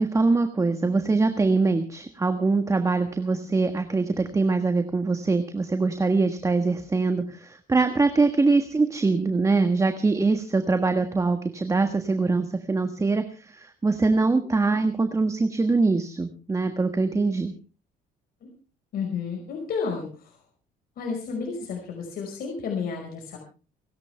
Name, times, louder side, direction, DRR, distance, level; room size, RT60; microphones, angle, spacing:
voice 1, 0.0-17.5, right 3 dB, 20° right, 8 dB, 1.5 m, -23 dB
voice 2, 18.9-20.4 21.0-23.4, left 5 dB, 60° left, 1 dB, 5.2 m, -31 dB
29.5 x 10.5 x 3.4 m, 0.35 s
cardioid pair, 110°, 17 cm